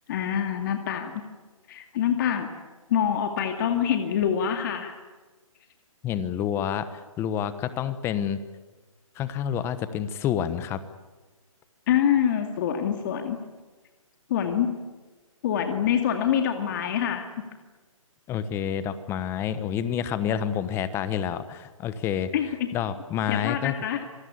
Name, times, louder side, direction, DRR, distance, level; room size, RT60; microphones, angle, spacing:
voice 1, 0.1-1.1 1.7-2.5 2.9-4.9 11.9-13.4 14.3-14.7 15.4-17.3 22.3-22.5 23.3-24.0, left 9 dB, 35° left, 5 dB, 2.3 m, -25 dB
voice 2, 6.0-6.9 7.2-8.4 9.2-10.8 18.3-22.3 22.7-23.7, left 9 dB, 15° left, 13 dB, 1.1 m, -28 dB
26.5 x 20.5 x 9.7 m, 1.3 s
hypercardioid pair, 150°, 18 cm